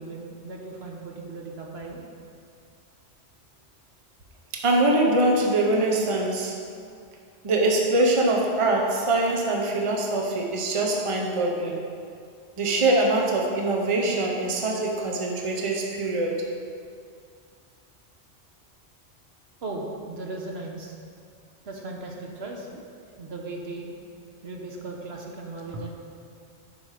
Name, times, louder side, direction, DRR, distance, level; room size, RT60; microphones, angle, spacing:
voice 1, 0.0-2.0 19.6-21.0 21.6-22.8 23.2-23.9 24.4-25.9, right 3 dB, 60° right, 0 dB, 1.2 m, -37 dB
voice 2, 4.5-6.6 7.4-11.8 12.6-16.5, right 2 dB, 30° right, 0 dB, 0.9 m, -23 dB
9.6 x 5.3 x 5.0 m, 2.3 s
omnidirectional pair, 1.2 m